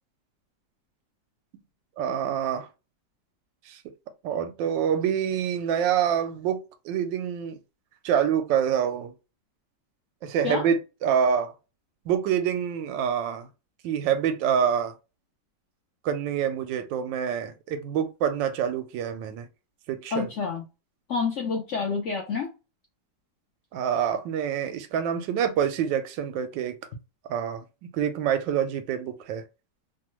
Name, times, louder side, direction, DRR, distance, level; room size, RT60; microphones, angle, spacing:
voice 1, 2.0-2.7 3.7-3.8 4.2-7.6 8.0-9.1 10.2-11.5 12.1-13.5 13.8-14.9 16.0-19.5 19.9-20.3 23.7-26.8 27.3-29.4, right 8 dB, 85° right, 1.3 m, -26 dB
voice 2, 20.1-20.6 21.1-22.5, left 5 dB, 70° left, 0.7 m, -28 dB
3.1 x 2.2 x 3.0 m
omnidirectional pair, 2.0 m